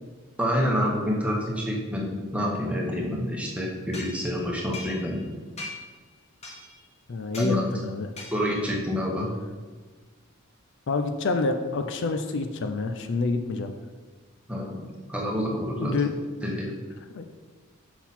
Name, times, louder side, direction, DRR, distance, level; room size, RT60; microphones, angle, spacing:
voice 1, 0.4-5.2 7.4-7.6 8.3-9.3 14.5-14.8 15.1-15.9 16.4-16.7, equal, 5° right, -2 dB, 1.1 m, -27 dB
sound 1, 3.9-5.3 5.6-6.0 6.4-6.9 7.3-7.6 8.2-8.7, left 2 dB, 30° left, 1.4 m, -41 dB
voice 2, 7.1-8.1 10.9-13.7 15.8-16.1 17.1-17.2, left 3 dB, 60° left, 6 dB, 0.5 m, -27 dB
5.9 x 5.9 x 4.2 m, 1.4 s
head